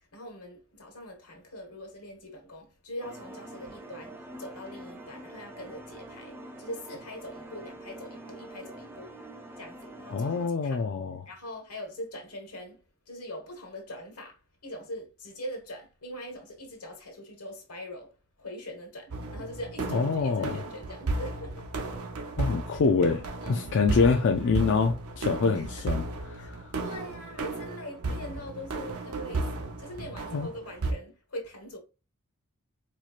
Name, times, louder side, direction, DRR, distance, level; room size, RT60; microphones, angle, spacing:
voice 1, 0.1-4.1 4.4-9.2 9.6-10.8 11.3-12.8 13.1-14.4 14.6-18.1 18.4-21.7 23.4-23.7 25.5-26.0 26.4-26.5 26.8-29.5 29.8-31.8, equal, 85° left, 1.4 m, -42 dB
sound 1, 3.0-10.5, right 1 dB, 10° right, 0.5 m, -45 dB
voice 2, 10.1-11.2 19.9-20.6 22.4-23.2 23.5-26.7 30.3-30.5, left 4 dB, 55° left, 0.4 m, -26 dB
sound 2, 19.1-30.9, right 2 dB, 80° right, 0.7 m, -34 dB
4.3 x 3.1 x 2.4 m
head